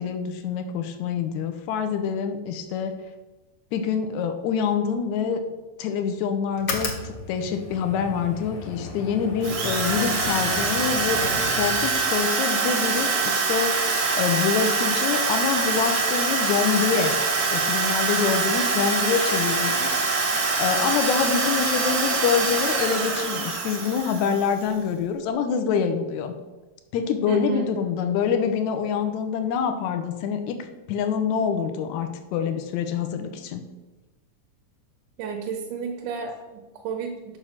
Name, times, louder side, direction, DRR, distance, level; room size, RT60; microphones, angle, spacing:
voice 1, 0.0-2.9 3.7-5.4 5.8-17.1 17.5-26.3 26.9-30.6 30.9-33.6, left 7 dB, 75° left, 7 dB, 2.1 m, -26 dB
sound 1, 6.5-12.2, left 3 dB, 55° left, 1.3 m, -34 dB
Drill, 9.4-24.6, right 4 dB, 55° right, 1.0 m, -24 dB
voice 2, 27.3-27.6 35.2-37.4, right 6 dB, 85° right, 2 dB, 2.4 m, -31 dB
7.0 x 6.1 x 5.7 m, 1.1 s
omnidirectional pair, 3.5 m